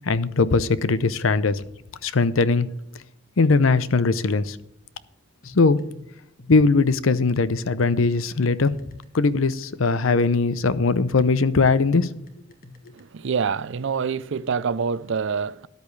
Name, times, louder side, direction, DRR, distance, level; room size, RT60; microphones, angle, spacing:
voice 1, 0.1-1.6 2.0-2.7 3.4-4.6 5.5-5.8 6.5-8.8 9.1-12.1, left 4 dB, 80° left, 0.7 m, -20 dB
sound 1, 5.4-13.0, left 2 dB, 50° left, 1.6 m, -48 dB
voice 2, 12.9-15.7, right 6 dB, 65° right, 0.5 m, -26 dB
13.0 x 10.5 x 3.2 m
head